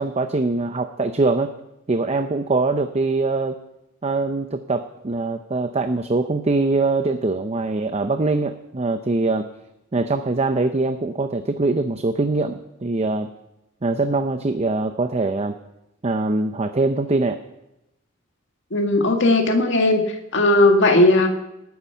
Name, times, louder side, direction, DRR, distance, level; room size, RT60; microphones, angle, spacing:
voice 1, 0.0-1.5 1.9-3.6 4.0-9.5 9.9-13.3 13.8-15.6 16.0-17.4, right 3 dB, 30° right, 8 dB, 0.6 m, -23 dB
voice 2, 18.7-20.0 20.3-21.3, left 2 dB, 60° left, 3 dB, 1.9 m, -16 dB
19.0 x 9.5 x 5.7 m, 0.90 s
head